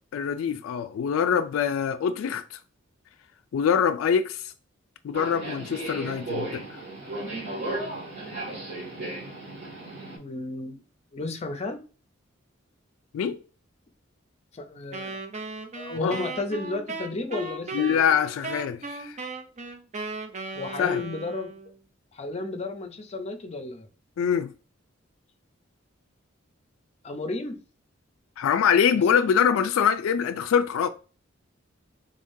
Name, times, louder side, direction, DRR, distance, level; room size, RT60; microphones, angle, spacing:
voice 1, 0.1-2.4 3.5-4.5 5.0-6.6 13.1-13.4 16.0-16.2 17.7-19.2 20.8-21.0 24.2-24.5 28.4-30.9, left 7 dB, 80° left, 0.3 m, -24 dB
Subway metro underground, 5.1-10.2, right 2 dB, 60° right, 1.9 m, -35 dB
voice 2, 10.1-10.8 11.1-11.8 14.5-15.2 15.7-18.0 20.5-21.5 22.1-23.9 27.0-27.6 28.9-29.0, left 2 dB, 35° left, 0.6 m, -33 dB
Wind instrument woodwind instrument, 14.9-21.8, right 3 dB, 35° right, 0.5 m, -36 dB
3.7 x 3.6 x 2.6 m
head